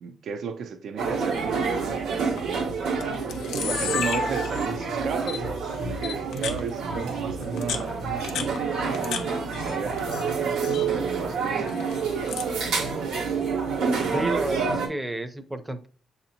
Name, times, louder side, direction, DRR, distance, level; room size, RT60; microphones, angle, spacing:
voice 1, 0.0-2.7 3.5-9.0 9.3-10.0 10.4-11.8, right 6 dB, 65° right, 0.5 m, -34 dB
sound 1, 1.0-14.9, right 5 dB, 90° right, 1.3 m, -28 dB
Camera, 2.2-2.4 3.0-3.1 3.3-4.9 5.3-5.4 6.0-6.6 7.4-9.2 9.5-10.2 10.5-10.9 11.7-12.5, left 6 dB, 85° left, 0.6 m, -32 dB
voice 2, 14.1-15.9, right 1 dB, 10° right, 0.6 m, -31 dB
6.5 x 2.8 x 2.8 m
cardioid pair, 90°, 0 cm